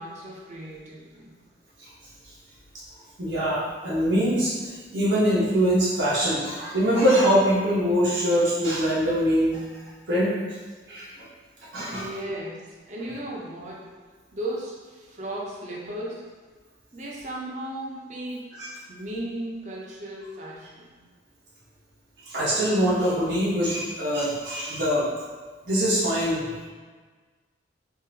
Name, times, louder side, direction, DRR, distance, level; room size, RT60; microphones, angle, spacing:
voice 1, 0.0-1.3 11.9-12.6 12.9-13.9 14.3-16.2 16.9-18.6 18.9-20.9, right 1 dB, 40° right, -4 dB, 0.7 m, -35 dB
voice 2, 3.2-4.5 4.9-9.6 10.1-10.3 10.9-11.1 11.7-12.1 18.6-18.7 22.2-25.1 25.6-26.7, equal, 90° right, -9 dB, 1.1 m, -23 dB
3.7 x 2.6 x 2.8 m, 1.4 s
head